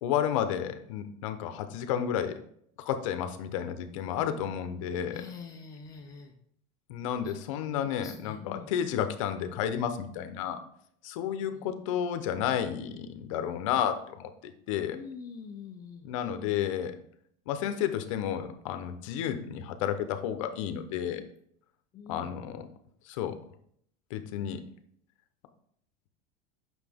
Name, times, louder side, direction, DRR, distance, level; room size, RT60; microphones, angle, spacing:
voice 1, 0.0-2.4 2.8-5.2 6.9-10.6 11.0-15.0 16.0-17.0 17.5-21.2 22.1-22.7 23.1-23.4 24.1-24.6, left 9 dB, 70° left, 9 dB, 0.8 m, -31 dB
voice 2, 5.1-6.3 7.2-7.4 7.9-8.7 11.5-11.7 14.9-16.1 21.1-21.2 21.9-22.3, left 6 dB, 20° left, 2 dB, 0.5 m, -45 dB
8.0 x 6.0 x 3.6 m, 0.68 s
cardioid pair, 180°, 17 cm